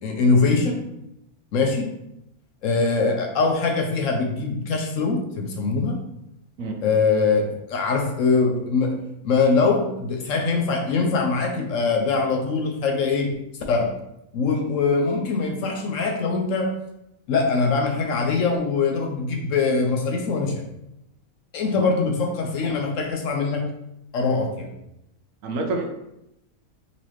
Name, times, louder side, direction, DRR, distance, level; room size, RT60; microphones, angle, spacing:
voice 1, 0.0-0.8 1.5-1.9 2.6-6.0 6.8-9.0 9.2-13.4 13.7-13.9 14.3-16.7 17.3-20.6 21.5-23.7 24.1-24.7, left 4 dB, 70° left, 2 dB, 0.9 m, -22 dB
voice 2, 25.4-25.9, right 3 dB, 70° right, 4 dB, 0.9 m, -27 dB
4.0 x 2.8 x 3.1 m, 0.83 s
omnidirectional pair, 1.5 m